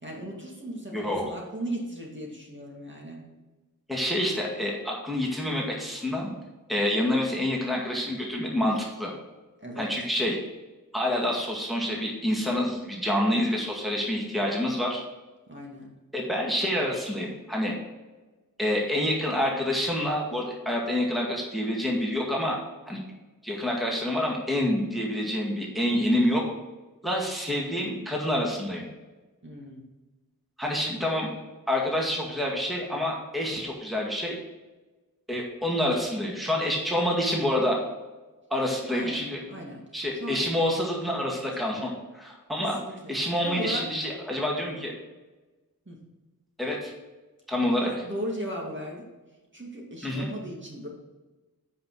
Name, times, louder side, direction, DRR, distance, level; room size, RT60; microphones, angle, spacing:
voice 1, 0.0-3.2 9.6-9.9 15.5-15.9 29.4-29.8 38.8-39.8 40.1-40.4 41.3-41.5 42.6-43.1 43.4-43.8 45.9-46.0 47.6-49.1 49.5-50.9, equal, 35° right, -2 dB, 2.3 m, -37 dB
voice 2, 0.9-1.2 3.9-6.3 6.7-9.1 9.8-10.4 10.9-15.0 16.1-17.7 18.6-22.6 22.9-23.0 23.4-26.4 27.0-28.9 30.6-31.3 31.7-34.4 35.3-37.8 38.5-39.4 39.9-42.8 43.1-44.9 46.6-46.9 47.5-47.9 50.0-50.3, left 1 dB, ahead, -2 dB, 2.1 m, -27 dB
8.6 x 5.6 x 4.8 m, 1.2 s
wide cardioid pair, 45°, 35 cm